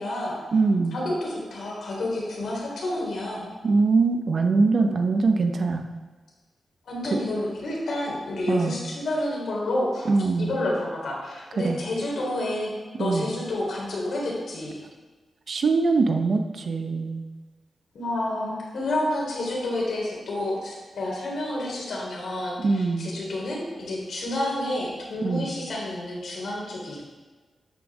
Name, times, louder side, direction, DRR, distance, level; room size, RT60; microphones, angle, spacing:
voice 1, 0.0-0.4 0.9-3.5 6.8-10.1 10.4-14.8 17.9-27.0, left 1 dB, 70° left, -3 dB, 3.7 m, -29 dB
voice 2, 0.5-0.9 3.6-5.8 8.5-8.8 10.1-10.5 11.6-11.8 13.0-13.3 15.5-17.2 22.6-23.1 25.2-25.5, right 4 dB, 50° right, 5 dB, 0.8 m, -22 dB
12.5 x 8.7 x 3.6 m, 1.3 s
wide cardioid pair, 180°, 0 cm